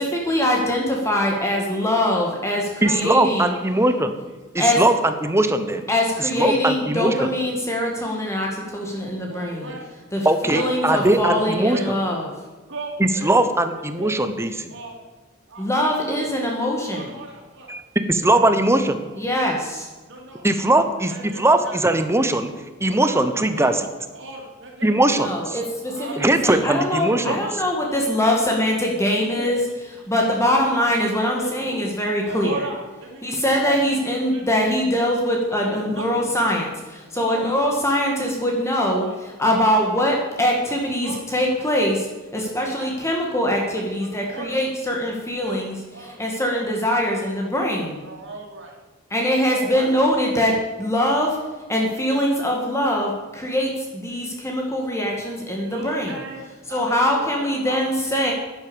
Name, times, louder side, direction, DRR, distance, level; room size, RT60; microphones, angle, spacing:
voice 1, 0.0-3.5 4.6-4.8 5.9-9.7 10.1-12.3 15.6-17.1 19.2-19.9 25.2-29.6 30.1-32.6 33.2-42.1 42.3-45.7 46.2-48.0 49.1-51.4 51.7-56.1 56.7-58.3, left 1 dB, 15° left, 0 dB, 1.8 m, -23 dB
voice 2, 1.4-1.8 2.1-2.3 2.7-3.0 3.4-3.9 9.3-9.9 10.2-11.9 12.7-13.3 13.7-14.3 14.7-14.9 15.5-16.2 16.7-17.7 18.2-19.1 19.3-19.5 20.1-20.7 21.1-21.8 22.8-23.3 23.5-23.8 24.1-25.0 25.8-26.4 27.1-27.4 29.1-29.5 30.0-30.6 31.4-31.8 32.2-33.4 34.1-34.4 35.7-36.2 36.6-36.7 37.1-37.5 38.0-38.2 39.0-39.2 39.7-39.9 41.0-41.2 41.6-41.7 42.4-42.9 44.0-44.6 45.4-45.6 45.9-46.2 46.5-46.6 48.0-48.8 49.5-49.9 55.6-57.8, right 2 dB, 65° right, 0 dB, 3.4 m, -37 dB
voice 3, 2.8-4.2 4.5-5.9 6.2-7.3 10.2-12.0 13.0-14.7 17.7-17.8 18.1-19.0 20.4-22.5 22.8-23.7 24.8-25.6 26.2-27.4, right 1 dB, 15° right, 9 dB, 1.0 m, -20 dB
10.5 x 10.5 x 7.0 m, 1.2 s
head